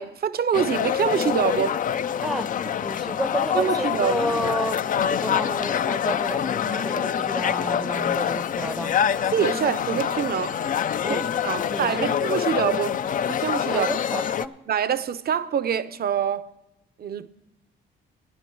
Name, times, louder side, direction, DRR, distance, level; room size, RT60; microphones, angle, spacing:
voice 1, 0.0-1.8 3.5-4.2 9.3-10.6 11.1-11.2 11.4-13.0 13.3-13.9 14.7-16.5 17.0-17.3, right 8 dB, 50° right, 0.7 m, -25 dB
sound 1, 0.5-14.5, left 8 dB, 45° left, 0.4 m, -26 dB
voice 2, 2.2-8.9 11.0-11.3 11.6-12.2 13.7-14.6, right 1 dB, ahead, 0.6 m, -31 dB
13.5 x 10.0 x 4.6 m
cardioid pair, 90°, 20 cm